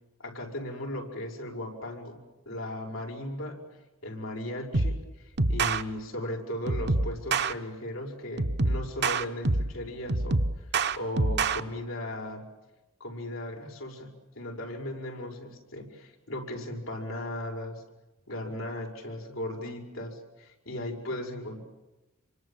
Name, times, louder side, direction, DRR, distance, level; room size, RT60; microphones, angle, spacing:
voice 1, 0.2-3.6 4.0-10.4 11.0-12.5 13.0-17.8 18.3-21.6, left 1 dB, 90° left, 1 dB, 6.4 m, -37 dB
sound 1, 4.7-5.0 5.4-5.8 6.7-7.5 8.4-9.8 10.1-11.6, right 3 dB, 55° right, 1.2 m, -26 dB
27.5 x 25.0 x 7.5 m, 1.1 s
head